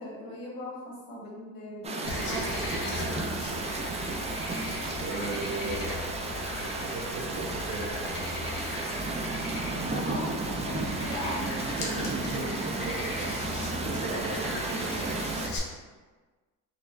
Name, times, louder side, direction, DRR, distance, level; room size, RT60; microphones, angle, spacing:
voice 1, 0.0-3.8 9.9-12.1 12.8-12.9, left 1 dB, 55° left, -4 dB, 1.2 m, -39 dB
sound 1, 1.8-15.5, right 3 dB, 20° right, 0.3 m, -33 dB
Frog, 2.0-15.6, left 2 dB, 85° left, 0.8 m, -38 dB
voice 2, 5.0-6.2 6.5-8.2 11.2-11.4 11.8-15.6, right 3 dB, 65° right, -5 dB, 0.7 m, -38 dB
4.0 x 2.1 x 2.6 m, 1.3 s
supercardioid pair, 75°, 42 cm